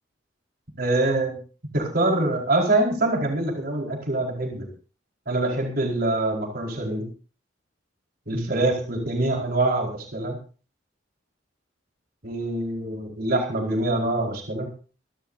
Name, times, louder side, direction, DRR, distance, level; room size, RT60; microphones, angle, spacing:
voice 1, 0.8-1.4 1.7-4.7 5.3-7.0 8.3-10.4 12.2-14.7, right 2 dB, 55° right, 0 dB, 4.5 m, -24 dB
26.0 x 13.0 x 2.7 m, 0.37 s
head